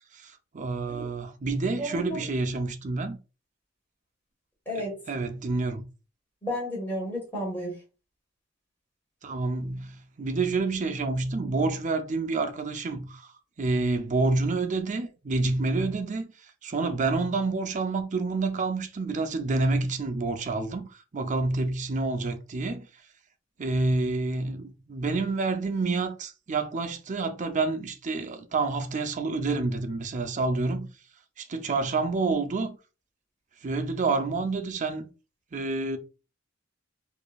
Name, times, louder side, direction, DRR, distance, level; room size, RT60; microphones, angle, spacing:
voice 1, 0.1-3.2 4.7-5.8 9.2-22.9 23.6-30.9 31.4-32.8 33.6-35.1 35.5-36.0, right 3 dB, 40° right, 0.5 m, -28 dB
voice 2, 1.8-2.2 4.7-4.9 6.4-7.7, equal, 10° left, 2.1 m, -32 dB
4.9 x 2.6 x 2.3 m
head